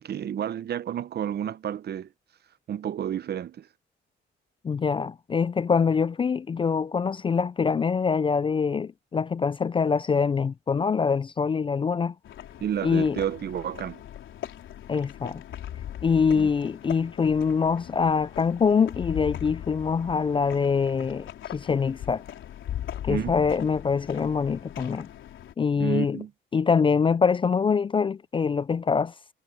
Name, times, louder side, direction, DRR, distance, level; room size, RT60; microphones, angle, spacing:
voice 1, 0.0-2.1 2.7-3.7 12.6-14.0 16.3-16.5 23.1-23.4 25.8-26.3, right 9 dB, 55° right, 0.8 m, -31 dB
voice 2, 4.6-12.1 12.8-13.2 14.9-15.4 16.0-22.2 23.0-25.1 25.6-26.2 26.5-29.1, left 5 dB, 25° left, 0.3 m, -24 dB
sound 1, 12.2-25.5, left 11 dB, 75° left, 4.0 m, -39 dB
cardioid pair, 90°, 20 cm